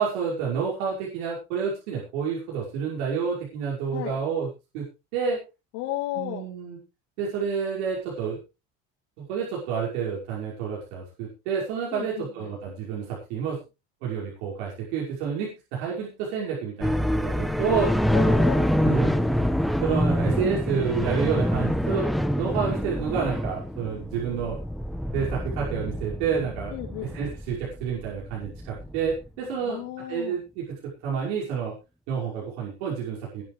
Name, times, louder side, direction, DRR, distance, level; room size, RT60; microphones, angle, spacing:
voice 1, 0.0-4.5 4.7-5.4 6.1-6.8 7.2-8.4 9.2-13.6 14.0-17.9 18.2-18.4 18.8-19.1 19.8-22.1 22.4-24.6 25.1-26.7 27.1-29.8 30.1-31.7 32.1-33.4, right 6 dB, 90° right, -4 dB, 5.8 m, -29 dB
voice 2, 5.7-6.4 11.9-12.5 18.1-18.7 26.7-27.4 29.5-30.4, left 14 dB, 85° left, -3 dB, 4.5 m, -34 dB
sound 1, 16.8-29.3, equal, ahead, 1.3 m, -26 dB
21.0 x 9.1 x 3.4 m, 0.30 s
supercardioid pair, 110°, 34 cm